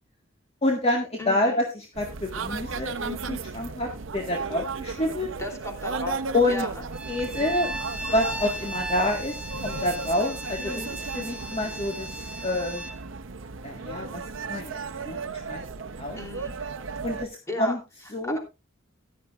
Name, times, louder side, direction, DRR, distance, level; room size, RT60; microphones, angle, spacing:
voice 1, 0.6-5.3 6.3-6.7 7.1-7.7 8.1-10.7 11.1-12.1 12.4-12.9 13.6-14.2 14.5-14.8 15.0-15.2 15.5-15.6 16.0-16.2 17.0-17.8 18.1-18.4, left 1 dB, 30° left, 2 dB, 1.6 m, -27 dB
voice 2, 1.2-1.6 5.4-6.2 6.5-6.8 10.6-11.0 16.2-16.5 17.5-17.7 18.2-18.4, left 1 dB, 15° left, 2 dB, 3.1 m, -35 dB
sound 1, 1.9-17.3, right 4 dB, 75° right, 0.8 m, -35 dB
Bowed string instrument, 6.9-13.0, right 1 dB, 5° right, 0.8 m, -37 dB
15.0 x 11.0 x 2.5 m, 0.26 s
head